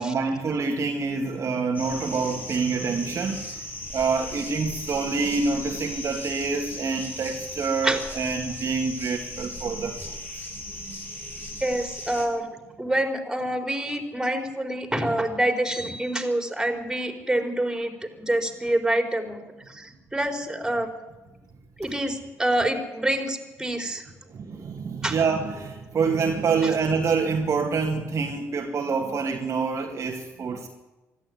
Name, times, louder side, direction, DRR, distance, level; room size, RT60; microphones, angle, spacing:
voice 1, 0.0-10.4 10.7-11.3 24.3-30.7, right 4 dB, 35° right, 2.3 m, -27 dB
sound 1, 1.7-12.3, left 1 dB, 25° left, 7.1 m, -37 dB
voice 2, 11.6-20.9 21.8-24.0 25.0-25.2, right 1 dB, 5° right, 4.7 m, -27 dB
24.5 x 12.5 x 9.6 m
figure-of-eight pair, 50°, 8 cm